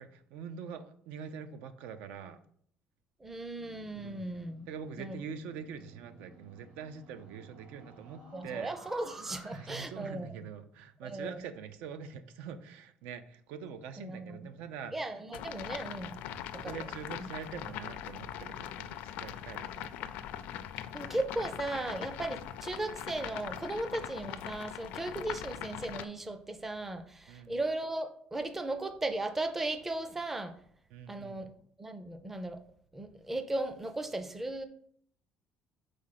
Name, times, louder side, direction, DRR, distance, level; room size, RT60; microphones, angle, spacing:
voice 1, 0.0-2.4 3.9-4.2 4.7-8.7 9.5-14.9 16.3-20.1 27.3-27.6 30.9-31.4, right 7 dB, 90° right, 11 dB, 0.6 m, -44 dB
voice 2, 3.2-4.7 5.0-5.2 8.3-10.3 11.0-11.4 14.0-14.5 14.9-16.2 16.6-16.9 20.9-30.5 31.1-31.5 31.8-32.6 32.9-34.7, right 2 dB, 10° right, 8 dB, 0.4 m, -36 dB
sound 1, 3.5-9.7, right 2 dB, 70° right, 2.5 m, -54 dB
sound 2, 15.3-26.0, left 11 dB, 70° left, 0.4 m, -41 dB
5.0 x 4.1 x 5.8 m, 0.62 s
cardioid pair, 175°, 3 cm